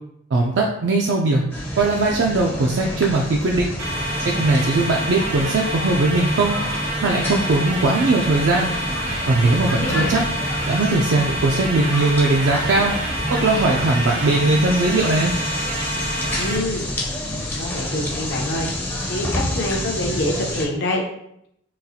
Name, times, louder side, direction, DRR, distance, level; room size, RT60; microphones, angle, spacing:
voice 1, 0.3-1.4 1.8-3.7 4.2-6.6 7.0-8.7 9.3-10.2 10.7-12.9 13.3-15.3, right 2 dB, 60° right, 0 dB, 0.4 m, -19 dB
sound 1, 1.5-20.7, left 1 dB, 10° left, 0.5 m, -28 dB
sound 2, 3.8-16.6, right 1 dB, 85° right, 1.0 m, -28 dB
voice 2, 9.5-10.1 16.4-16.9 17.5-21.0, left 1 dB, 60° left, 0 dB, 0.6 m, -26 dB
3.9 x 2.4 x 2.7 m, 0.75 s
head